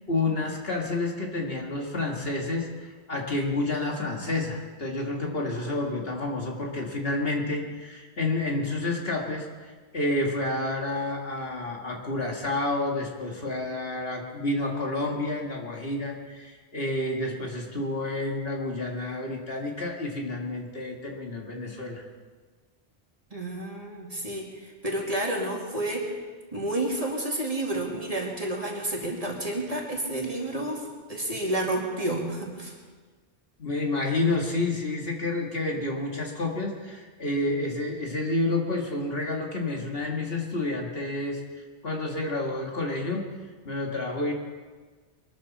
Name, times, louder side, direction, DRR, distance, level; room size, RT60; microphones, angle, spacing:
voice 1, 0.1-22.0 33.6-41.4 41.8-43.2 43.7-44.3, left 2 dB, 60° left, 0 dB, 2.1 m, -29 dB
voice 2, 23.3-26.2 26.5-32.7, right 1 dB, 35° right, -2 dB, 2.6 m, -30 dB
22.5 x 13.5 x 4.2 m, 1.4 s
omnidirectional pair, 1.1 m